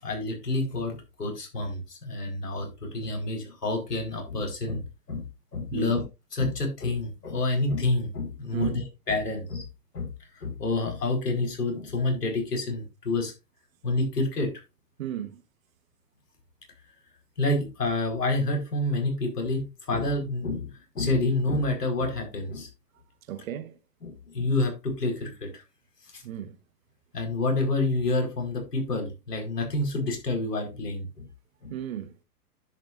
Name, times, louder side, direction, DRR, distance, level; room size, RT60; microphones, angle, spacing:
voice 1, 0.0-5.2 5.5-6.0 6.3-9.6 9.9-10.1 10.4-13.3 13.8-14.5 17.4-22.7 24.0-25.6 26.1-26.2 27.1-31.1 31.6-31.7, left 2 dB, 90° left, 4.9 m, -28 dB
voice 2, 15.0-15.4 23.3-23.8 26.2-26.6 31.7-32.1, right 11 dB, 60° right, 1.4 m, -34 dB
10.5 x 8.9 x 2.6 m
hypercardioid pair, 125°, 46 cm